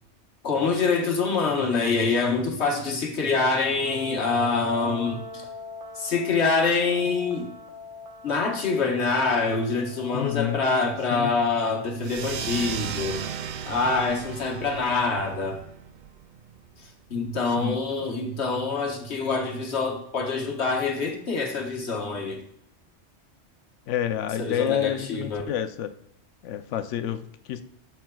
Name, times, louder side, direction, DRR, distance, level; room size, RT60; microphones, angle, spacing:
voice 1, 0.4-5.4 6.0-7.5 8.2-13.2 13.7-15.6 17.1-22.4 24.4-25.5, left 4 dB, 70° left, 1 dB, 1.5 m, -25 dB
sound 1, 3.8-13.5, left 3 dB, 90° right, 1.2 m, -42 dB
voice 2, 10.1-10.6 11.1-11.3 17.5-17.8 23.9-25.9 26.4-27.6, left 10 dB, 90° left, 10 dB, 0.9 m, -29 dB
sound 2, 12.0-17.1, right 8 dB, 55° right, 0.5 m, -36 dB
13.0 x 5.8 x 2.3 m, 0.75 s
omnidirectional pair, 1.2 m